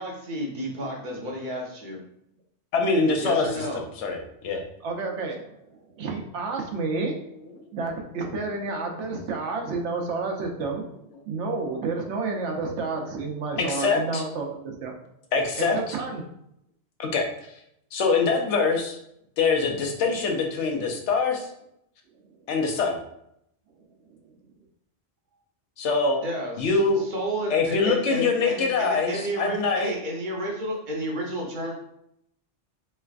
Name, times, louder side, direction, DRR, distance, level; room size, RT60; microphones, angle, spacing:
voice 1, 0.0-2.0 3.2-3.8 26.2-31.7, right 1 dB, 50° right, -1 dB, 0.7 m, -32 dB
voice 2, 2.7-4.6 13.6-14.2 15.3-15.9 17.0-17.3 17.9-19.0 19.4-21.5 22.5-23.0 25.8-26.2 26.6-27.0 27.5-29.9, left 4 dB, 80° left, 2 dB, 0.9 m, -24 dB
voice 3, 4.8-5.6 6.0-7.3 7.7-10.9 11.3-15.0 15.6-16.2, right 3 dB, 80° right, 2 dB, 0.9 m, -30 dB
3.2 x 3.2 x 2.4 m, 0.76 s
omnidirectional pair, 1.2 m